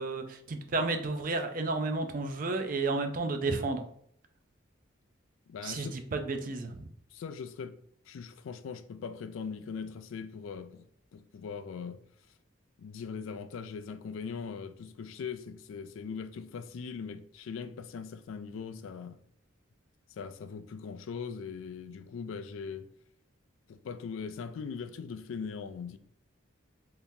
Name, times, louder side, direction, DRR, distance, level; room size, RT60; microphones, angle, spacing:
voice 1, 0.0-3.9 5.6-6.9, right 3 dB, 40° right, 0.4 m, -32 dB
voice 2, 5.5-6.0 7.1-7.8 8.1-10.9 11.1-12.0 12.8-19.2 20.2-22.9 23.7-26.0, left 6 dB, 75° left, 0.3 m, -40 dB
3.6 x 2.9 x 2.6 m
head